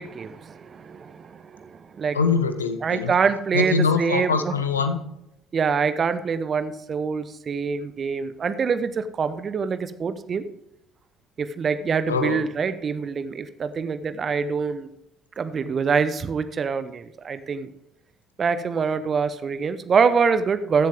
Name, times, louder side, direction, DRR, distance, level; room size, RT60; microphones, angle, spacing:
voice 1, 0.0-2.2 2.8-4.5 5.5-10.4 11.4-14.9 15.4-17.7 18.4-20.9, right 5 dB, 35° right, 12 dB, 0.7 m, -25 dB
voice 2, 2.1-3.1 3.5-5.0 12.1-12.4, left 5 dB, 80° left, 9 dB, 0.8 m, -23 dB
14.5 x 7.5 x 3.5 m, 0.84 s
figure-of-eight pair, 50°, 0 cm